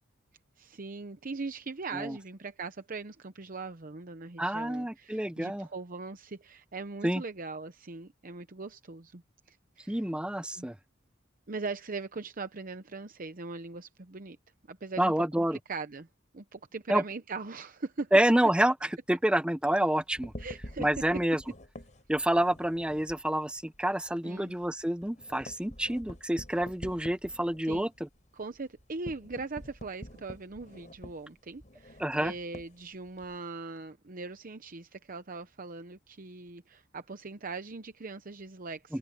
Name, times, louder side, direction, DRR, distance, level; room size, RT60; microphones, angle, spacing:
voice 1, 0.6-9.2 9.5-10.0 10.5-10.7 11.5-14.4 14.7-16.1 16.3-18.1 20.4-21.0 24.2-24.6 27.6-27.9 28.3-39.0, right 3 dB, 45° right, 0.8 m, -40 dB
voice 2, 4.4-5.7 7.0-7.2 9.9-10.7 15.0-15.6 16.9-17.0 18.1-20.3 20.8-21.4 22.1-27.9 32.0-32.3 38.9-39.0, right 1 dB, 5° right, 0.6 m, -28 dB
sound 1, 20.0-23.2 23.6-23.8 24.1-24.2 24.5-33.3, equal, 40° left, 6.2 m, -47 dB
open air
head